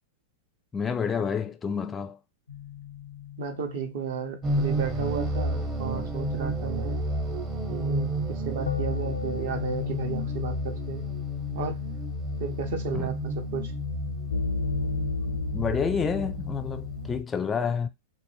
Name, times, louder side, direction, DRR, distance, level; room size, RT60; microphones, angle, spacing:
voice 1, 0.7-2.2 12.9-13.1 15.5-17.9, left 6 dB, 20° left, 0.4 m, -29 dB
sound 1, 2.5-17.2, left 6 dB, 80° left, 0.4 m, -35 dB
voice 2, 3.4-7.0 7.7-11.1 11.5-11.8 12.4-13.7, right 6 dB, 60° right, 0.7 m, -34 dB
sound 2, 4.4-17.2, right 1 dB, 30° right, 0.8 m, -32 dB
2.5 x 2.1 x 3.1 m
figure-of-eight pair, 100°, 0 cm